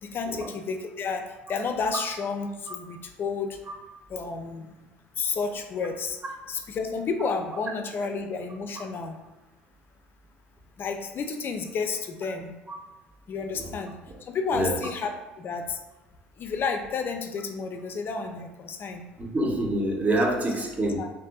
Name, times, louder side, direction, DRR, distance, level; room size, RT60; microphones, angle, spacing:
voice 1, 0.0-3.6 4.1-4.7 5.2-6.2 6.5-9.2 10.8-12.5 13.3-14.0 14.3-15.8 16.4-19.1 21.0-21.1, left 5 dB, 40° left, 6 dB, 0.4 m, -31 dB
voice 2, 19.2-21.0, right 1 dB, 25° right, 0 dB, 0.7 m, -26 dB
2.6 x 2.5 x 2.3 m, 1.1 s
hypercardioid pair, 60°, 5 cm